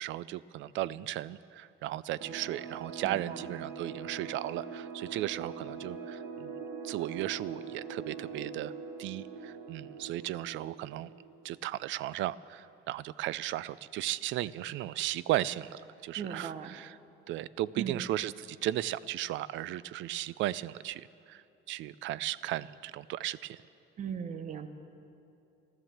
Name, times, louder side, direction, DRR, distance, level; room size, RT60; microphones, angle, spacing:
voice 1, 0.0-6.5 6.8-8.7 9.0-11.1 11.4-16.9 17.3-23.6, right 14 dB, 70° right, 19 dB, 0.4 m, -35 dB
sound 1, 2.2-11.5, right 5 dB, 90° right, 1.3 m, -43 dB
voice 2, 3.0-3.5 16.2-16.8 17.8-18.1 24.0-24.7, right 7 dB, 40° right, 10 dB, 0.8 m, -38 dB
14.5 x 13.0 x 7.3 m, 2.7 s
cardioid pair, 165°, 20 cm